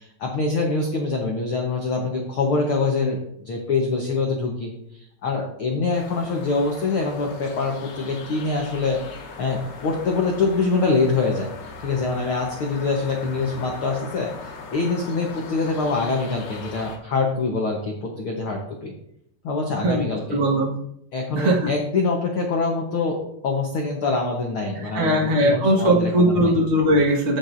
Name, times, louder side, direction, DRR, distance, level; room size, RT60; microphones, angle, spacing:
voice 1, 0.0-11.5 11.8-18.9 19.4-20.2 21.1-26.5, left 3 dB, 85° left, 0 dB, 1.1 m, -25 dB
sound 1, 5.9-17.0, left 4 dB, 70° left, 2.4 m, -39 dB
voice 2, 19.8-20.8 21.3-21.7 24.7-27.4, right 1 dB, 70° right, -3 dB, 0.6 m, -20 dB
16.5 x 6.1 x 2.6 m, 0.73 s
omnidirectional pair, 4.1 m